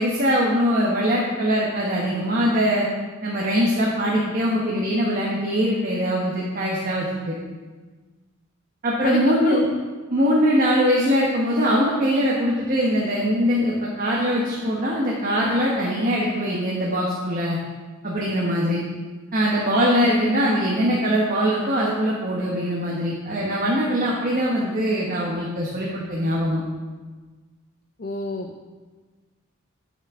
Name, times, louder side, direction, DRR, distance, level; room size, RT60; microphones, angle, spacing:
voice 1, 0.0-2.9 3.2-7.3 8.8-9.7 10.1-17.6 18.0-18.8 19.3-26.6, equal, 40° right, -4 dB, 1.2 m, -22 dB
voice 2, 9.0-9.6 28.0-28.7, left 3 dB, 40° left, 4 dB, 0.5 m, -29 dB
11.5 x 6.4 x 3.7 m, 1.3 s
head